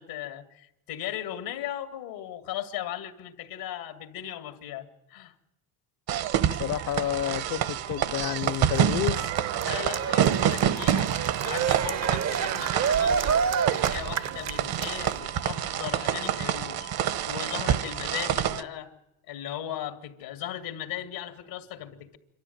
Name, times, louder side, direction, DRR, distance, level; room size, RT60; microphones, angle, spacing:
voice 1, 0.0-5.3 9.6-11.1 11.4-13.3 13.7-16.9 17.3-18.9 19.3-22.2, left 11 dB, 85° left, 2.1 m, -37 dB
sound 1, 6.1-18.6, right 10 dB, 60° right, 1.1 m, -27 dB
sound 2, 6.2-18.0, right 11 dB, 75° right, 1.6 m, -45 dB
voice 2, 6.6-9.3, left 13 dB, 50° left, 0.8 m, -30 dB
Cheering, 8.2-15.2, right 7 dB, 40° right, 0.7 m, -29 dB
27.0 x 13.0 x 9.3 m
supercardioid pair, 85°, 42 cm